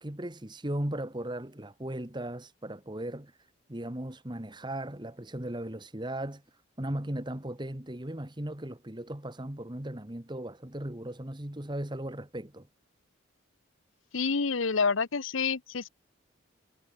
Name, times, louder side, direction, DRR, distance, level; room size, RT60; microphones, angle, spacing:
voice 1, 0.0-3.3 3.7-6.4 6.8-12.7, right 1 dB, 20° right, 1.6 m, -37 dB
voice 2, 14.1-15.9, left 5 dB, 75° left, 0.9 m, -28 dB
head